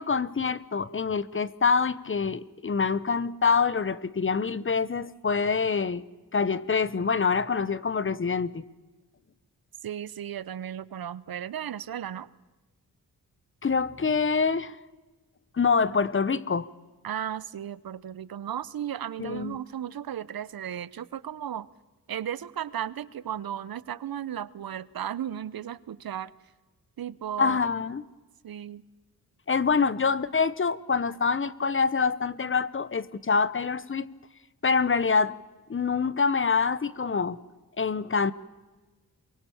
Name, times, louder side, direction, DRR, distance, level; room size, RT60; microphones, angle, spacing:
voice 1, 0.0-6.0 6.3-8.6 13.6-14.8 15.5-16.7 19.2-19.6 27.4-28.0 29.5-34.1 34.6-35.4 35.7-37.4 37.8-38.3, left 5 dB, 35° left, 18 dB, 0.8 m, -25 dB
voice 2, 9.8-12.3 17.0-21.7 22.1-26.3 27.0-27.6 28.4-28.8, right 10 dB, 70° right, 20 dB, 0.8 m, -35 dB
24.0 x 22.5 x 7.1 m, 1.2 s
wide cardioid pair, 135°, 37 cm